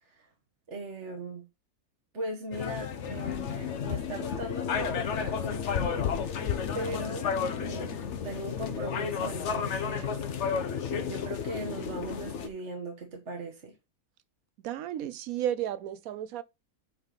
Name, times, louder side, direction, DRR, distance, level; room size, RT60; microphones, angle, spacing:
voice 1, 0.7-1.5 2.1-6.1 6.7-7.3 7.6-8.0 8.2-10.2 10.9-13.7, right 1 dB, 50° right, 1.6 m, -39 dB
sound 1, 2.5-12.5, left 7 dB, 55° left, 1.0 m, -32 dB
voice 2, 14.6-16.4, right 11 dB, 70° right, 0.9 m, -33 dB
8.7 x 4.4 x 3.9 m
omnidirectional pair, 1.7 m